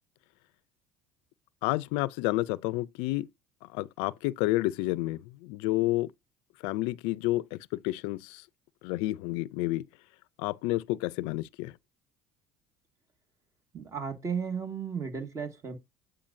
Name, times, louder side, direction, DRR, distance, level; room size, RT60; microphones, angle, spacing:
voice 1, 1.6-3.3 3.6-6.1 6.6-8.5 8.8-9.8 10.4-11.7, left 19 dB, 75° left, 0.4 m, -30 dB
voice 2, 13.7-15.8, right 6 dB, 35° right, 1.8 m, -34 dB
8.7 x 4.9 x 2.6 m
supercardioid pair, 90°, 9 cm